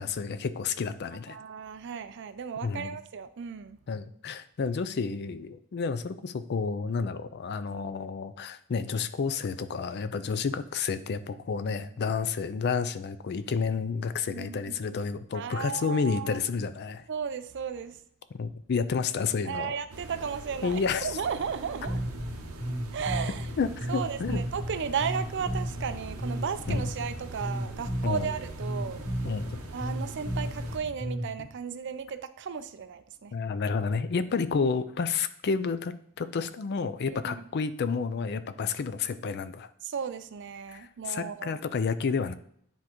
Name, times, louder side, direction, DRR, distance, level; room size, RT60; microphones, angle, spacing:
voice 1, 0.0-1.4 2.6-3.0 3.9-17.0 18.3-19.8 20.6-21.1 23.6-24.4 26.7-26.9 28.0-28.3 29.2-29.5 33.3-39.7 40.7-42.3, left 5 dB, 50° left, 12 dB, 0.4 m, -30 dB
voice 2, 1.3-3.8 14.3-15.0 15.3-16.4 17.1-18.0 19.4-22.0 22.9-23.5 23.9-29.0 29.7-33.3 37.1-37.3 39.8-41.6, right 6 dB, 50° right, 11 dB, 0.4 m, -35 dB
sound 1, 19.9-30.8, right 3 dB, 75° right, 0.8 m, -44 dB
Bass guitar, 21.9-31.4, equal, 15° left, 1.2 m, -34 dB
9.8 x 3.5 x 3.0 m, 0.67 s
head